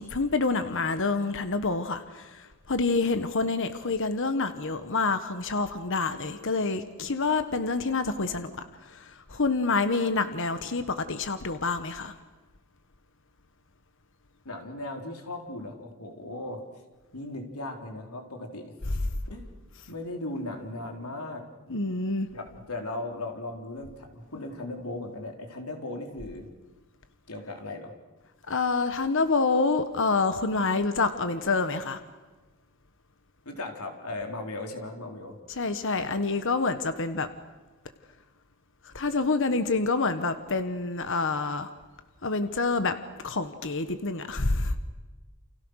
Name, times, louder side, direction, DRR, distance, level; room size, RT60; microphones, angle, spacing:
voice 1, 0.0-8.5 8.9-12.1 21.7-22.3 28.5-32.0 35.6-37.3 38.9-41.7 42.2-42.9 43.2-44.8, left 3 dB, 60° left, 10 dB, 1.3 m, -27 dB
voice 2, 14.4-16.6 17.1-18.7 19.3-19.5 19.9-21.4 22.3-26.5 27.3-27.9 33.5-35.4, left 2 dB, 80° left, 3 dB, 3.9 m, -37 dB
29.5 x 28.5 x 6.5 m, 1.2 s
head